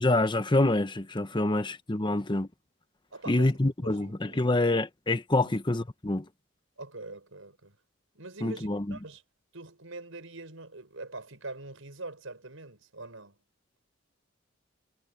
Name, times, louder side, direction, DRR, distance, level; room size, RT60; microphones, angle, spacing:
voice 1, 0.0-2.5 3.3-6.3 8.4-9.0, left 2 dB, 25° left, 1.0 m, -26 dB
voice 2, 3.1-3.5 3.8-4.5 5.4-5.6 6.8-7.8 8.1-9.2 9.5-13.4, right 2 dB, 90° right, 5.4 m, -44 dB
head